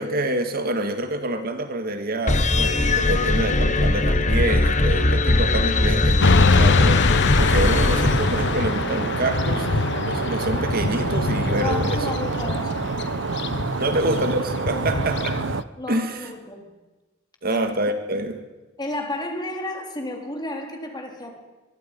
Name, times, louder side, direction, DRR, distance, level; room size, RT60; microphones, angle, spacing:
voice 1, 0.0-9.8 10.1-12.1 13.8-15.4 15.9-16.3 17.4-18.4, right 1 dB, 50° right, 7 dB, 1.7 m, -27 dB
sound 1, 2.3-8.9, left 2 dB, 40° left, 1.4 m, -20 dB
Motorcycle / Traffic noise roadway noise, 6.2-15.6, left 4 dB, 60° left, 0.9 m, -24 dB
Stream, 7.3-15.6, right 4 dB, 65° right, 0.8 m, -28 dB
voice 2, 11.6-12.9 13.9-14.0 14.9-15.1 15.8-16.7 17.5-17.7 18.8-21.3, left 1 dB, 20° left, 2 dB, 3.4 m, -32 dB
24.0 x 23.0 x 5.3 m, 1.2 s
head